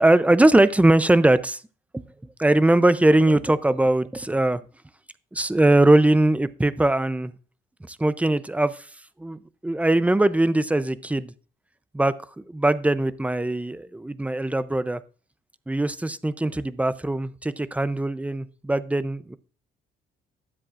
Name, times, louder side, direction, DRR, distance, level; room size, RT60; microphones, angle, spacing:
voice 1, 0.0-1.6 1.9-2.0 2.4-4.6 5.3-7.3 7.9-8.9 9.2-11.3 11.9-15.0 15.7-19.4, right 1 dB, 5° right, 14 dB, 0.6 m, -21 dB
13.0 x 7.6 x 2.5 m, 0.37 s
cardioid pair, 90°, 20 cm